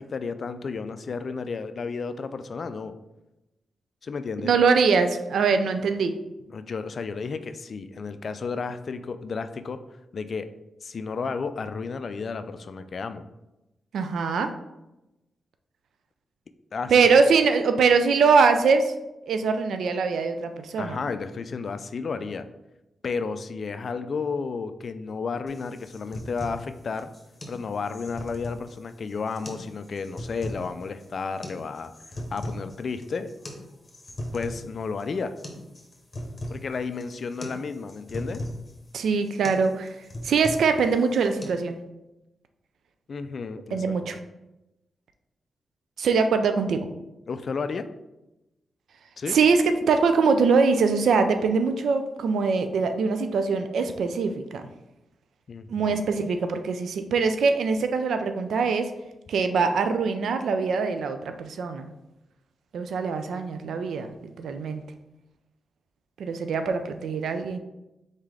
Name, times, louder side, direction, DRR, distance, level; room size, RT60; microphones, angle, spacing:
voice 1, 0.0-2.9 4.0-4.5 6.5-9.8 10.1-10.5 10.8-13.2 16.7-16.9 20.8-22.5 23.0-27.1 27.5-31.9 32.3-33.3 34.3-35.3 36.5-38.4 43.1-44.0 47.3-47.9 49.2-49.4 55.5-56.3, left 5 dB, 60° left, 11 dB, 0.3 m, -32 dB
voice 2, 4.4-6.1 13.9-14.5 16.9-18.9 19.3-21.0 38.9-39.9 40.2-41.8 43.7-44.2 46.0-46.9 49.3-54.6 55.7-58.9 59.3-61.9 62.7-64.1 64.4-64.8 66.2-67.6, right 5 dB, 80° right, 8 dB, 0.3 m, -23 dB
sound 1, 25.5-41.5, left 1 dB, 35° left, 1.0 m, -39 dB
4.0 x 3.6 x 3.3 m, 0.95 s
cardioid pair, 60°, 0 cm